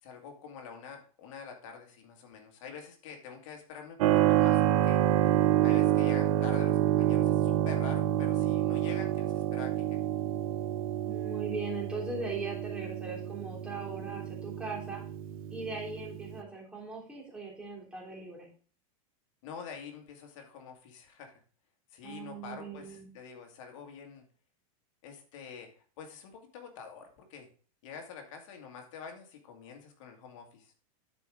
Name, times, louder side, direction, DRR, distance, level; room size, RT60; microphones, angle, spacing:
voice 1, 0.0-5.0 5.6-10.0 19.4-21.4 21.9-24.2 25.0-25.7 26.0-27.5 27.8-30.7, left 6 dB, 60° left, 3 dB, 2.1 m, -46 dB
Keyboard (musical), 4.0-16.4, right 12 dB, 70° right, 1.0 m, -28 dB
voice 2, 11.1-15.0 15.5-18.5 22.0-23.1, right 3 dB, 5° right, -4 dB, 3.4 m, -39 dB
12.0 x 4.8 x 3.7 m, 0.42 s
supercardioid pair, 155°, 18 cm